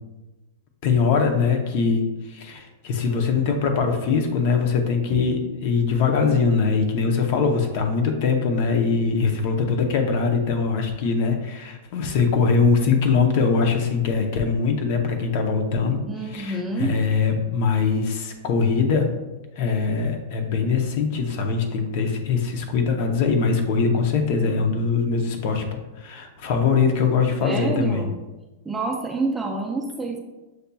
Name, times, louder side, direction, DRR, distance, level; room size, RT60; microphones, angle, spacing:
voice 1, 0.8-19.2 19.6-25.6 26.0-28.0, left 5 dB, 45° left, 4 dB, 0.7 m, -22 dB
voice 2, 16.1-17.0 27.4-28.1 28.7-30.2, right 3 dB, 10° right, -1 dB, 0.4 m, -27 dB
7.8 x 2.7 x 2.3 m, 1.1 s
supercardioid pair, 160°, 0 cm